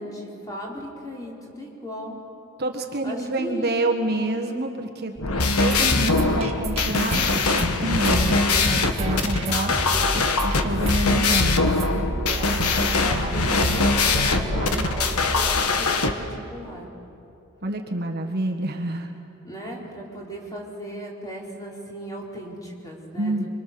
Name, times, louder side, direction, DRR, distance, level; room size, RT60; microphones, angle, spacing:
voice 1, 0.0-2.2 3.0-3.7 12.9-16.9 18.1-18.3 19.4-23.5, equal, 15° left, -3 dB, 4.1 m, -37 dB
voice 2, 2.6-5.1 5.6-7.2 7.8-8.4 8.7-11.7 17.6-19.1 23.2-23.5, right 1 dB, 45° right, 3 dB, 1.5 m, -28 dB
sound 1, 5.2-16.1, left 3 dB, 75° left, 1.5 m, -22 dB
sound 2, 5.6-15.6, right 1 dB, 30° right, 1.8 m, -29 dB
26.0 x 24.0 x 6.8 m, 2.7 s
head